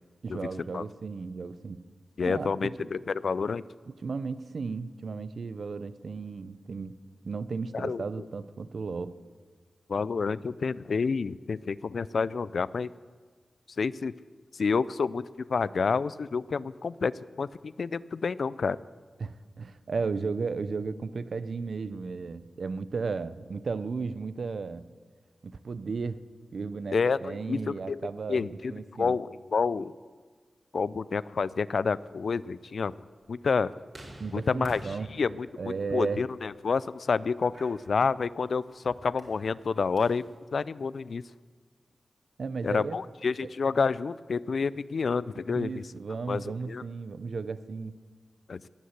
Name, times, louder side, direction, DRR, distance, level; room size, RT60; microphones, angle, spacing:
voice 1, 0.2-1.8 2.2-2.9 3.9-7.0 7.2-9.2 19.2-24.9 25.4-26.2 26.5-29.2 34.2-35.1 35.6-36.3 42.4-43.0 45.5-48.0, right 4 dB, 70° right, 14 dB, 0.6 m, -34 dB
voice 2, 2.2-3.6 7.7-8.0 9.9-12.9 13.8-14.1 14.5-17.1 17.4-18.8 26.9-28.0 28.3-28.7 29.0-29.9 30.7-32.9 33.3-33.7 34.3-34.8 35.2-40.2 40.5-41.2 42.6-45.8 46.3-46.8 48.5-48.6, left 5 dB, 75° left, 18 dB, 0.3 m, -29 dB
sound 1, 31.2-40.3, right 1 dB, 55° right, 3.6 m, -52 dB
18.5 x 6.6 x 8.0 m, 1.5 s
cardioid pair, 45°, 0 cm